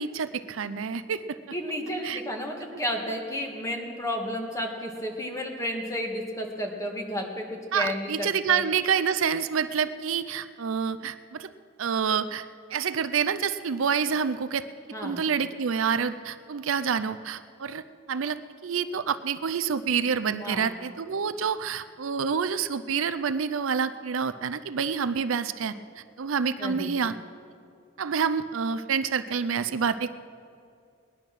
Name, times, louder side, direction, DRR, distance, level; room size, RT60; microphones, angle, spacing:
voice 1, 0.0-1.4 2.0-2.2 7.7-11.5 11.8-12.4 12.7-14.7 15.0-17.8 18.1-18.4 18.6-25.7 26.2-27.2 28.0-30.2, right 6 dB, 75° right, 13 dB, 0.5 m, -27 dB
voice 2, 1.5-7.4 7.7-8.6 14.9-15.2 20.4-20.7 26.6-26.9, equal, 15° left, 1 dB, 1.9 m, -32 dB
20.0 x 10.5 x 6.1 m, 2.4 s
head